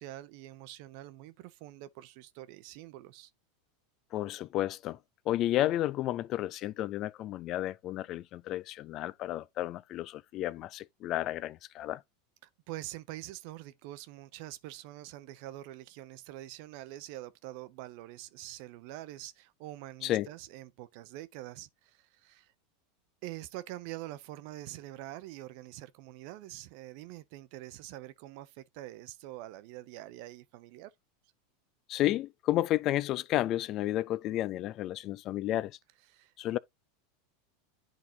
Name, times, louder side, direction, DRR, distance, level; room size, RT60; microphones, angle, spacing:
voice 1, 0.0-3.3 12.4-22.5 23.2-30.9 36.1-36.3, right 15 dB, 60° right, 0.7 m, -45 dB
voice 2, 4.1-5.0 5.3-12.0 20.0-20.3 31.9-35.8 36.4-36.6, left 14 dB, 45° left, 0.4 m, -32 dB
10.5 x 4.2 x 2.7 m
hypercardioid pair, 95°, 0 cm